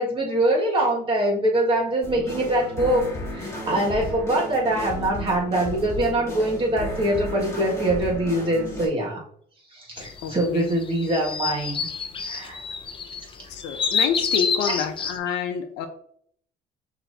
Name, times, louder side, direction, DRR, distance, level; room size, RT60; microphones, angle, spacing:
voice 1, 0.0-3.1 3.3-9.2 9.7-11.9 12.2-12.6 14.7-14.8 15.3-15.4, right 1 dB, 30° right, -2 dB, 1.7 m, -23 dB
sound 1, 2.0-8.9, left 1 dB, 15° left, 1.9 m, -33 dB
sound 2, 10.0-15.2, left 5 dB, 30° left, 0.5 m, -28 dB
voice 2, 10.2-10.7 13.5-15.9, left 7 dB, 85° left, 7 dB, 0.7 m, -28 dB
6.0 x 2.9 x 2.6 m, 0.62 s
cardioid pair, 110°, 17 cm